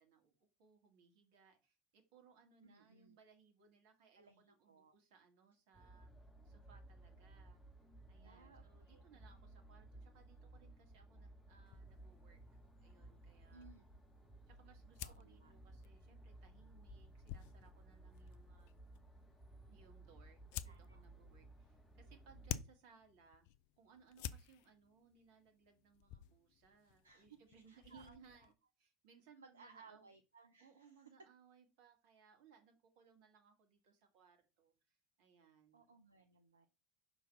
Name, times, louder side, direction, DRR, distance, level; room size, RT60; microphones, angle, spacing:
voice 1, 0.0-6.1 6.4-7.6 8.1-12.4 12.8-13.7 14.5-18.7 19.7-23.5 23.8-30.1 30.6-35.9, right 6 dB, 60° right, 5 dB, 2.0 m, -67 dB
voice 2, 2.6-3.2 4.1-4.9 8.2-9.0 13.5-13.8 15.0-15.5 20.6-21.0 27.0-27.3 27.7-28.5 29.3-31.0 35.7-36.7, right 4 dB, 85° right, 7 dB, 0.6 m, -63 dB
sound 1, 5.7-22.5, right 2 dB, 5° left, 1.7 m, -59 dB
sound 2, 11.7-28.5, left 11 dB, 60° left, 0.4 m, -53 dB
5.8 x 4.0 x 5.9 m, 0.30 s
figure-of-eight pair, 75°, 0 cm